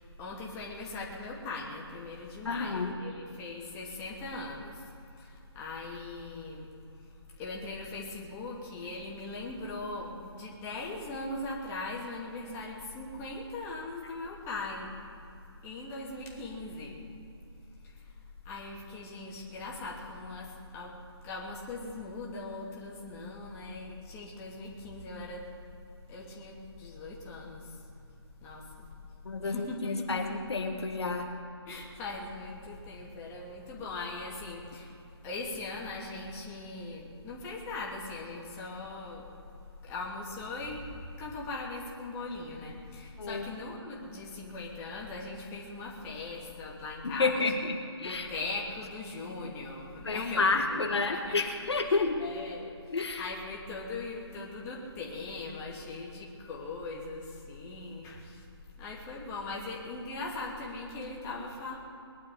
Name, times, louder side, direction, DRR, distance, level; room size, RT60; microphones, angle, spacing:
voice 1, 0.0-4.9 5.2-6.7 7.4-14.9 15.6-17.0 17.8-18.2 18.4-20.9 21.2-25.5 26.1-27.8 28.4-28.9 29.4-30.4 31.7-34.9 35.2-39.3 39.8-47.3 48.0-51.3 52.2-58.5 58.8-61.8, left 3 dB, 20° left, -4 dB, 2.7 m, -40 dB
voice 2, 2.4-3.0 29.2-31.3 43.2-43.4 47.0-48.3 50.0-52.2 52.9-53.2, left 3 dB, 70° left, 3 dB, 1.6 m, -30 dB
21.0 x 11.0 x 5.1 m, 2.7 s
figure-of-eight pair, 150°, 14 cm